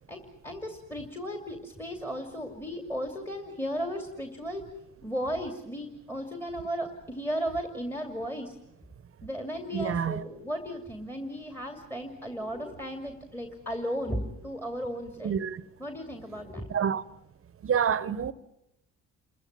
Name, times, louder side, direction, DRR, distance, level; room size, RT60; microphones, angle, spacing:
voice 1, 0.1-4.7 5.0-8.6 9.2-15.4 15.8-16.7, equal, 5° left, 2.6 m, -35 dB
voice 2, 9.7-10.2 15.2-15.6 16.7-17.0 17.6-18.3, right 7 dB, 45° right, 1.1 m, -27 dB
28.5 x 14.5 x 9.4 m
cardioid pair, 90°, 30 cm